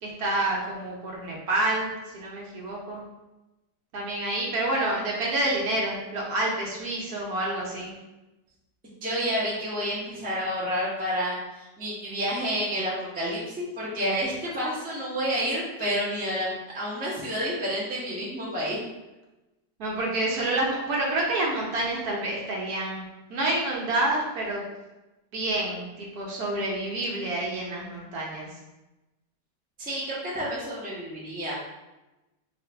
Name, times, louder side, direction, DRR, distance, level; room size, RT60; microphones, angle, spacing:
voice 1, 0.0-3.0 3.9-7.9 19.8-24.6 25.3-28.5, right 2 dB, 65° right, -3 dB, 1.1 m, -28 dB
voice 2, 9.0-18.8 29.8-31.6, equal, 10° right, -7 dB, 0.5 m, -29 dB
3.0 x 2.5 x 4.3 m, 1.0 s
omnidirectional pair, 1.9 m